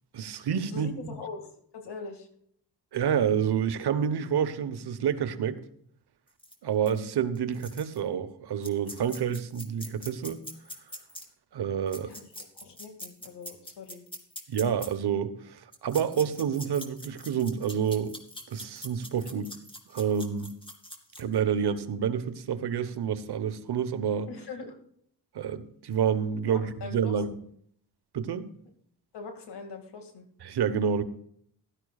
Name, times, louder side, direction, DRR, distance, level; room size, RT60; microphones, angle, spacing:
voice 1, 0.1-1.1 2.9-5.6 6.6-10.4 11.5-12.1 14.5-18.2 18.5-19.5 19.9-20.6 21.2-24.3 25.3-27.3 28.1-28.5 30.4-31.0, right 8 dB, 75° right, 11 dB, 1.1 m, -28 dB
voice 2, 0.7-2.3 12.0-12.3 12.6-14.1 19.4-19.5 24.3-24.8 26.5-27.2 29.1-30.3, left 4 dB, 85° left, 4 dB, 2.2 m, -42 dB
sound 1, 6.4-6.5 6.9-7.0 7.3-8.0 8.6-11.2 11.9-14.9 15.7-21.3, equal, 15° left, 2.4 m, -43 dB
16.0 x 12.5 x 2.4 m, 0.65 s
cardioid pair, 65°, 39 cm